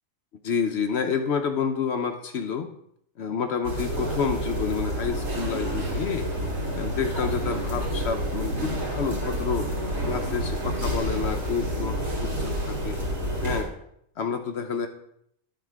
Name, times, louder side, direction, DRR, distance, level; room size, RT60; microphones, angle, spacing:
voice 1, 0.4-2.7 3.2-6.3 6.7-9.7 10.1-13.0 13.4-13.7 14.2-14.9, left 6 dB, 60° left, 6 dB, 0.8 m, -29 dB
sound 1, 3.6-13.6, equal, 75° right, 2.7 m, -29 dB
10.5 x 4.2 x 4.6 m, 0.74 s
omnidirectional pair, 1.4 m